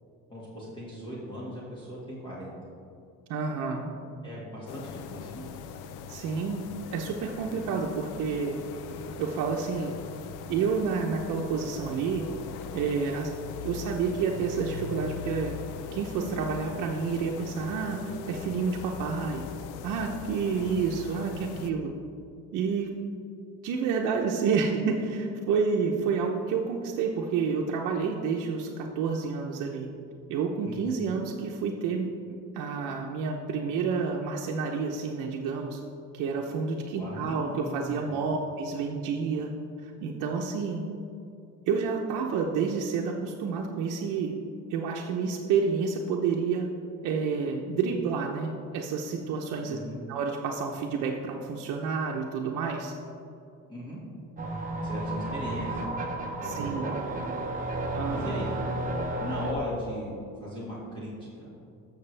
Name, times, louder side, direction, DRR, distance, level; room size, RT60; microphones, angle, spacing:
voice 1, 0.3-2.5 4.2-5.5 8.9-9.0 20.5-20.7 30.6-31.2 36.9-38.3 49.7-50.0 53.7-54.0 54.8-55.8 56.4-57.3 58.1-58.5 59.2-61.5, equal, 15° left, -7 dB, 1.8 m, -38 dB
voice 2, 3.3-3.9 6.1-6.6 6.9-8.6 9.2-10.0 10.5-12.3 12.7-13.3 13.6-15.6 15.9-19.5 19.8-21.9 22.5-22.9 23.6-29.9 30.3-35.8 36.1-39.5 39.8-40.8 41.7-44.3 44.7-46.7 47.0-49.8 50.1-52.9 56.4-56.8 57.9-58.3, right 5 dB, 75° right, 0 dB, 0.8 m, -29 dB
sound 1, 4.7-21.7, left 7 dB, 75° left, 0.6 m, -40 dB
sound 2, 54.4-59.5, right 1 dB, 25° right, 1.0 m, -32 dB
14.5 x 6.5 x 3.3 m, 2.6 s
cardioid pair, 155°, 31 cm